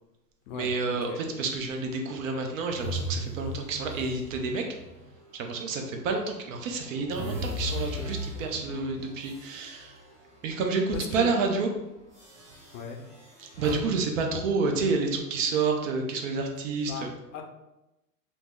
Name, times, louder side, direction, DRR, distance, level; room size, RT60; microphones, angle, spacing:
voice 1, 0.5-4.6 5.3-9.9 10.4-11.7 13.4-17.1, right 4 dB, 55° right, 3 dB, 0.7 m, -29 dB
sound 1, 2.7-6.0 6.5-10.8 11.1-11.3 12.1-13.7, equal, 15° right, 0.4 m, -38 dB
voice 2, 10.9-11.3 12.7-13.0 16.9-17.4, left 5 dB, 55° left, 4 dB, 0.6 m, -37 dB
2.9 x 2.0 x 3.5 m, 0.95 s
hypercardioid pair, 120°, 48 cm